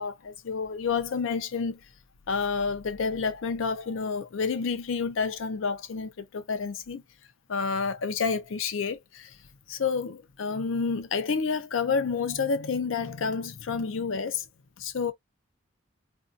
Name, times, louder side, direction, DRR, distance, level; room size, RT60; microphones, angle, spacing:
voice 1, 0.0-1.8 2.3-7.0 7.5-9.4 9.7-14.4 14.8-15.1, left 5 dB, 75° left, 0.5 m, -29 dB
2.6 x 2.3 x 2.4 m
head